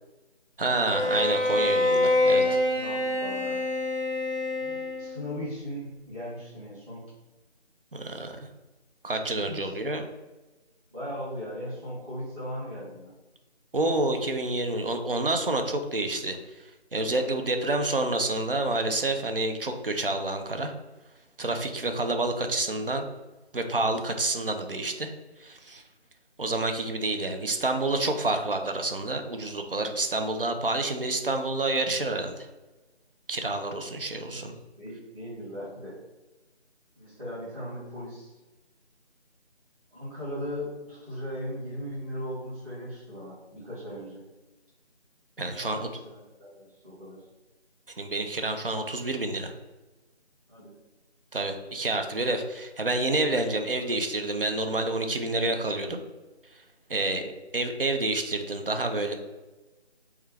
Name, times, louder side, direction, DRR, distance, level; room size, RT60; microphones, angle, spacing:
voice 1, 0.6-2.4 7.9-8.3 9.0-10.0 13.7-16.4 16.9-20.7 21.4-23.1 23.5-25.1 25.4-25.8 26.4-32.5 33.3-34.5 45.4-45.9 48.0-49.5 51.3-56.0 56.9-59.1, right 2 dB, 55° right, 5 dB, 0.4 m, -28 dB
Bowed string instrument, 0.8-5.3, left 1 dB, 75° right, 1.5 m, -26 dB
voice 2, 2.4-3.6 4.5-7.0 9.4-9.7 10.9-13.1 17.5-17.6 34.2-34.4 34.8-35.9 37.0-38.4 39.9-44.2 45.6-47.2 50.5-50.8 56.9-57.2, equal, 30° right, -14 dB, 1.3 m, -38 dB
2.9 x 2.3 x 3.4 m, 1.1 s
figure-of-eight pair, 170°, 34 cm